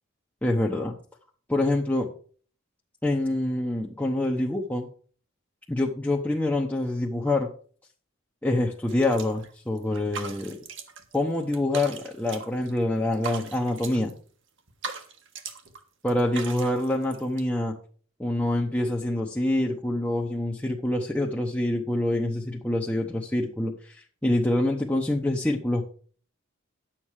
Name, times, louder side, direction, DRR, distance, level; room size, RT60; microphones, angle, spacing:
voice 1, 0.4-0.9 1.5-2.1 3.0-4.9 5.7-7.5 8.4-10.6 11.1-14.1 16.0-17.7 18.2-25.8, left 1 dB, 10° left, -2 dB, 0.9 m, -26 dB
sound 1, 8.9-9.5 9.8-11.2 11.4-12.8 13.1-14.1 14.6-15.8 16.1-17.4, right 5 dB, 60° right, 1.5 m, -39 dB
10.5 x 7.4 x 4.8 m, 0.44 s
head